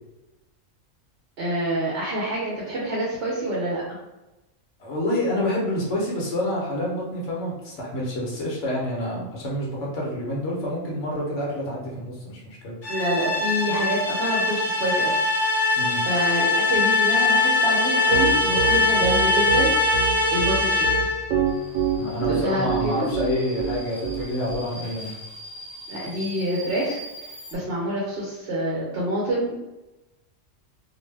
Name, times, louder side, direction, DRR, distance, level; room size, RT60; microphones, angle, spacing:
voice 1, 1.4-4.0 12.9-15.2 15.4-20.9 22.2-23.1 25.9-29.6, right 1 dB, 55° right, -5 dB, 0.9 m, -27 dB
voice 2, 4.8-12.8 15.8-16.0 22.0-25.1, left 1 dB, 70° left, -3 dB, 1.0 m, -28 dB
sound 1, 12.8-21.3, left 3 dB, 45° left, 0.9 m, -22 dB
Piano, 18.1-24.6, right 9 dB, 90° right, 1.0 m, -25 dB
Subway metro underground, 21.5-27.6, equal, 30° left, 0.6 m, -41 dB
2.6 x 2.1 x 3.2 m, 1.0 s
omnidirectional pair, 1.3 m